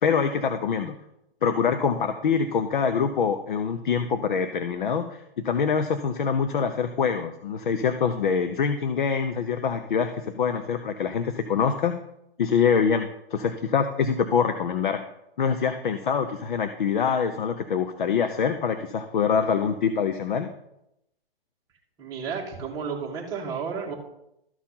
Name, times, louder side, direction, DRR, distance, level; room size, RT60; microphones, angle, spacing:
voice 1, 0.0-1.0 1.4-12.0 12.4-15.0 15.4-20.5, left 6 dB, 55° left, 9 dB, 0.8 m, -25 dB
voice 2, 22.0-23.9, right 6 dB, 15° right, -2 dB, 1.7 m, -32 dB
13.0 x 4.4 x 5.6 m, 0.82 s
hypercardioid pair, 160°, 30 cm